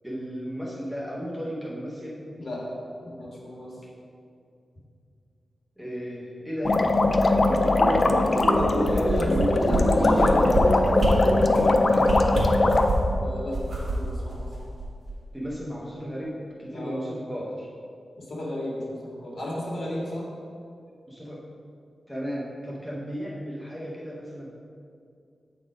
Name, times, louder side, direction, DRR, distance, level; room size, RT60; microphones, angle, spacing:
voice 1, 0.0-2.2 3.8-3.9 5.8-6.8 7.6-7.7 8.2-8.4 8.9-9.5 9.9-11.0 11.4-12.5 15.3-17.7 21.1-21.4 22.1-24.5, equal, 5° right, -5 dB, 0.9 m, -35 dB
voice 2, 3.0-3.7 8.6-10.4 13.2-14.5 16.7-17.0 18.2-20.3, left 1 dB, 50° left, -5 dB, 1.8 m, -34 dB
sound 1, 6.6-12.9, left 2 dB, 35° left, 0.4 m, -21 dB
sound 2, 7.5-11.3, right 2 dB, 70° right, 1.1 m, -28 dB
sound 3, 8.3-9.4 9.7-9.8 10.1-10.6 11.0-11.1 11.5-11.7 12.0-13.1 13.5-15.1 15.5-15.6, right 3 dB, 45° right, 1.5 m, -28 dB
7.6 x 4.1 x 5.0 m, 2.4 s
wide cardioid pair, 165°, 0 cm